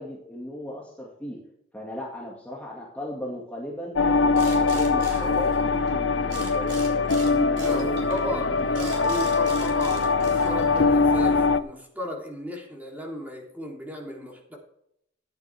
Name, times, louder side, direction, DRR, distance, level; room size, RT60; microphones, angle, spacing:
voice 1, 0.0-1.4 1.7-4.0 4.3-8.7, equal, 10° left, -4 dB, 2.1 m, -37 dB
sound 1, 4.0-11.6, left 4 dB, 70° left, 0.7 m, -22 dB
sound 2, 4.3-5.9 6.3-11.0, right 3 dB, 65° right, 4.4 m, -41 dB
voice 2, 7.6-14.6, left 1 dB, 10° right, -1 dB, 3.2 m, -35 dB
14.5 x 9.9 x 3.5 m, 0.73 s
head